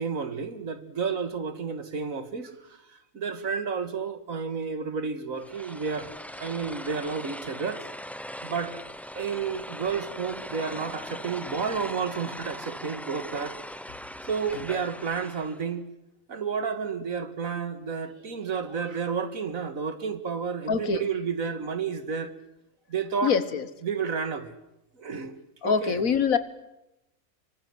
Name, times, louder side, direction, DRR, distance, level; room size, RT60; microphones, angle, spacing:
voice 1, 0.0-6.1 6.4-7.9 8.4-8.8 9.1-13.6 14.3-15.9 16.3-22.3 22.9-23.4 23.8-24.5 25.0-25.3 25.6-26.0, right 6 dB, 80° right, 2.2 m, -31 dB
sound 1, 5.4-15.7, equal, ahead, 0.7 m, -40 dB
voice 2, 20.7-21.1 23.2-23.7 25.6-26.4, left 6 dB, 85° left, 1.9 m, -24 dB
25.5 x 24.0 x 7.9 m
omnidirectional pair, 1.4 m